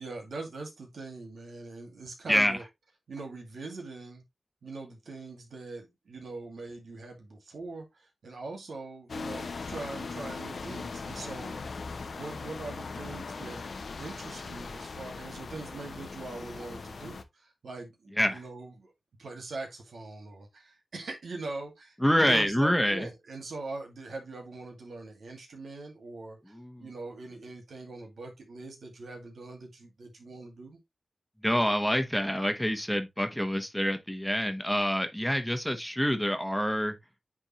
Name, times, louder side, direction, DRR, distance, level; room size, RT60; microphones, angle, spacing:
voice 1, 0.0-2.6 3.1-4.2 4.6-13.7 14.0-18.9 19.2-22.0 22.3-26.4 26.8-30.8, right 3 dB, 85° right, 2.3 m, -42 dB
sound 1, 9.1-17.2, left 4 dB, 70° left, 0.8 m, -39 dB
voice 2, 22.0-23.1 26.5-26.9 31.4-37.0, equal, 5° left, 1.2 m, -27 dB
9.8 x 3.6 x 3.1 m
wide cardioid pair, 80°, 0 cm